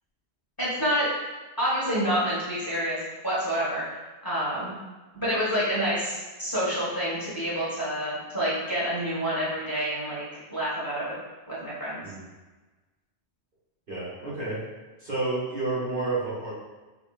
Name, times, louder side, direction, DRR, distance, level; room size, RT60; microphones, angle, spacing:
voice 1, 0.6-1.1 1.6-3.0 3.2-3.8 4.2-4.8 5.1-10.2 10.5-11.1 11.5-12.0, equal, 20° left, -10 dB, 1.2 m, -28 dB
voice 2, 13.9-14.6 15.0-16.5, right 2 dB, 50° right, -9 dB, 1.8 m, -30 dB
5.7 x 3.0 x 2.4 m, 1.2 s
omnidirectional pair, 1.1 m